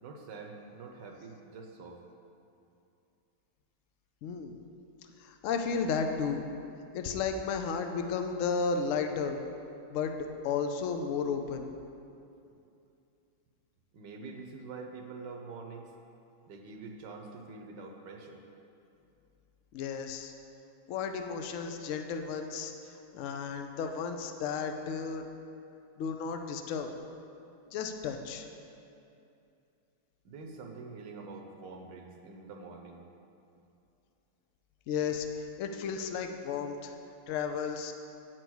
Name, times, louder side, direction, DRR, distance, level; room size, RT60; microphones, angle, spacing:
voice 1, 0.0-2.0 13.9-15.9 16.5-18.4 30.2-33.0, right 4 dB, 75° right, 2 dB, 1.4 m, -45 dB
voice 2, 4.2-4.6 5.2-6.4 6.9-9.4 9.9-10.1 10.4-11.7 19.7-20.3 20.9-22.7 23.1-25.3 26.0-26.9 27.7-28.5 34.9-35.3 35.6-36.9 37.3-37.9, left 5 dB, 75° left, 5 dB, 0.7 m, -33 dB
9.1 x 4.7 x 6.1 m, 2.7 s
omnidirectional pair, 2.0 m